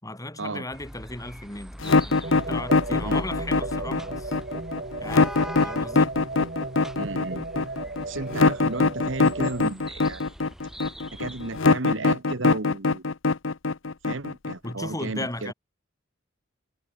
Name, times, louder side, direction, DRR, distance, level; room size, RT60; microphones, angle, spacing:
voice 1, 0.0-4.4 5.0-6.2 14.6-15.5, left 1 dB, 15° left, 5.2 m, -36 dB
sound 1, 0.7-11.6, equal, ahead, 2.8 m, -42 dB
sound 2, 1.8-14.7, left 3 dB, 70° left, 0.9 m, -22 dB
sound 3, 2.2-9.6, right 2 dB, 45° right, 4.8 m, -35 dB
voice 2, 6.9-7.5 8.1-10.2 11.1-13.1 14.0-15.5, right 2 dB, 65° right, 1.5 m, -33 dB
head